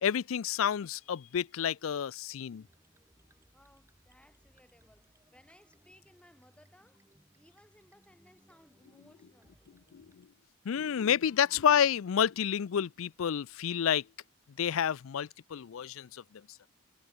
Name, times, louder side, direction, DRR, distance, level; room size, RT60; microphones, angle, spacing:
voice 1, 0.0-2.6 9.9-10.3 10.6-14.1 14.6-16.4, left 8 dB, 70° left, 0.4 m, -29 dB
sound 1, 2.6-10.3, right 1 dB, 10° right, 1.7 m, -66 dB
voice 2, 3.5-9.6, left 1 dB, 5° left, 6.4 m, -62 dB
head